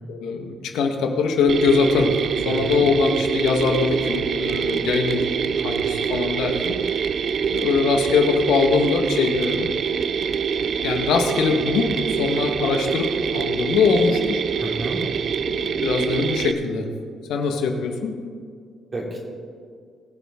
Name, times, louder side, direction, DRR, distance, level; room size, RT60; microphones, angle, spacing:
voice 1, 0.1-2.1 2.4-5.3 5.5-6.8 7.5-9.8 10.2-10.3 10.8-11.9 12.2-14.4 15.4-16.9 17.3-18.2, left 5 dB, 85° left, 4 dB, 1.5 m, -22 dB
Mechanisms, 1.5-16.5, right 7 dB, 45° right, 0.4 m, -25 dB
voice 2, 2.5-2.8 9.4-9.6 14.6-15.0 18.9-19.2, right 2 dB, 25° right, -2 dB, 2.8 m, -32 dB
21.5 x 7.4 x 3.7 m, 2.1 s
cardioid pair, 145°, 0 cm